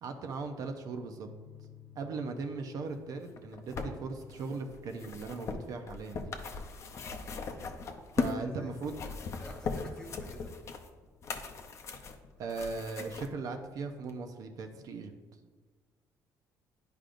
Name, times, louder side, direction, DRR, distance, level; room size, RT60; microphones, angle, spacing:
voice 1, 0.0-1.3 2.0-6.3 8.1-9.0 12.4-15.1, right 4 dB, 55° right, 5 dB, 0.6 m, -38 dB
sound 1, 1.2-8.8, left 9 dB, 90° left, 1.3 m, -58 dB
sound 2, 3.3-8.4 8.8-13.3 14.1-14.2, left 4 dB, 40° left, 0.6 m, -39 dB
voice 2, 8.2-8.7 9.4-10.5, left 1 dB, 10° left, 2 dB, 0.9 m, -49 dB
10.5 x 5.0 x 2.5 m, 1.4 s
cardioid pair, 140°, 7 cm